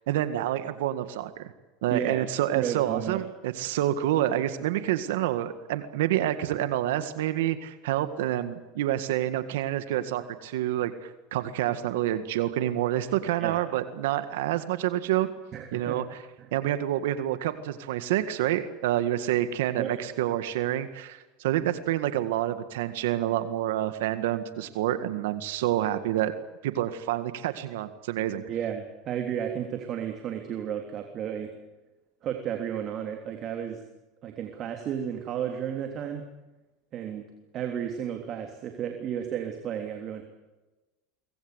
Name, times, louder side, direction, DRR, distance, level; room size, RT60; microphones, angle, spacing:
voice 1, 0.1-1.5 1.8-15.3 15.7-16.2 16.5-26.3 26.6-28.4, right 12 dB, 85° right, 11 dB, 1.8 m, -28 dB
voice 2, 1.9-2.3 2.5-3.2 13.4-13.6 15.5-16.0 16.4-16.5 19.8-19.9 28.5-31.5 32.2-33.8 34.2-36.3 36.9-37.2 37.5-40.2, right 9 dB, 40° right, 4 dB, 3.3 m, -32 dB
24.0 x 20.5 x 8.2 m, 1.1 s
supercardioid pair, 120°, 0 cm